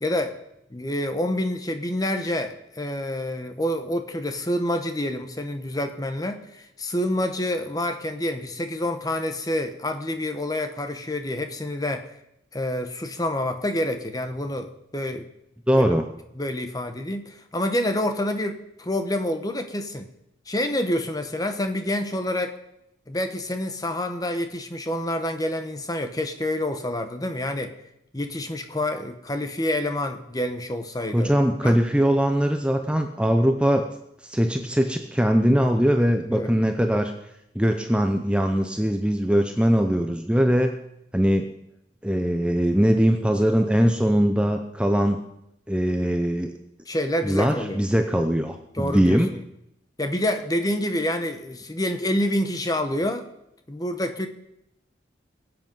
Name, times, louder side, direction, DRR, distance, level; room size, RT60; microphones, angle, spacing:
voice 1, 0.0-0.4 0.7-12.1 12.5-15.3 16.4-20.1 20.5-22.6 23.1-27.7 28.1-31.3 31.6-31.8 36.3-36.5 46.9-47.8 48.7-49.2 50.0-53.3 53.7-54.3, left 1 dB, 20° left, 7 dB, 1.0 m, -27 dB
voice 2, 15.7-16.1 31.1-33.9 34.2-37.1 37.5-40.7 41.1-41.5 42.0-45.2 45.7-46.5 47.2-49.3, equal, 5° right, 5 dB, 0.7 m, -21 dB
21.0 x 8.0 x 5.4 m, 0.81 s
head